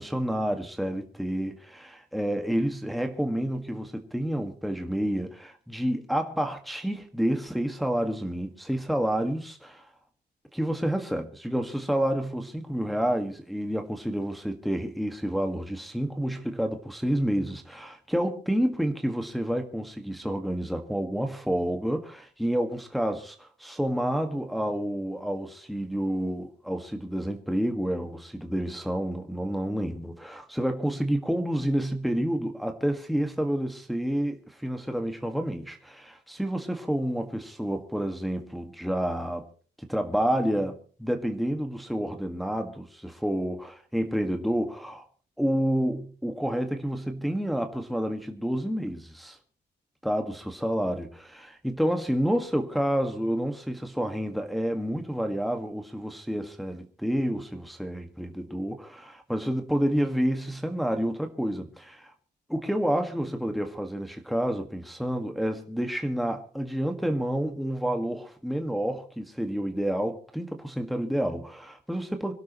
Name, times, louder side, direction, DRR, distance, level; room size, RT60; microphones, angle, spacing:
voice 1, 0.0-9.9 10.5-39.4 39.8-45.0 45.4-49.4 50.0-62.1 62.5-72.3, equal, ahead, 1.7 m, -29 dB
25.5 x 12.0 x 3.1 m
cardioid pair, 100°, 18 cm